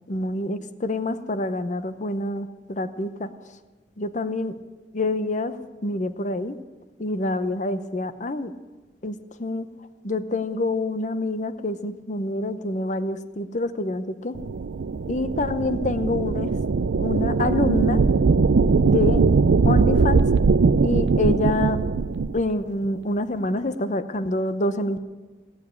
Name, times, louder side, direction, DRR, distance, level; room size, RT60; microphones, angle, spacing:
voice 1, 0.1-3.3 4.0-4.6 4.9-5.5 5.8-6.6 7.0-8.5 9.0-9.7 10.0-14.4 15.1-16.5 17.0-18.0 18.8-19.2 19.6-20.2 20.8-21.8 22.3-25.0, left 2 dB, 40° left, 11 dB, 0.7 m, -26 dB
sound 1, 14.3-22.4, right 4 dB, 75° right, 0.5 m, -20 dB
17.5 x 7.2 x 9.6 m, 1.3 s
head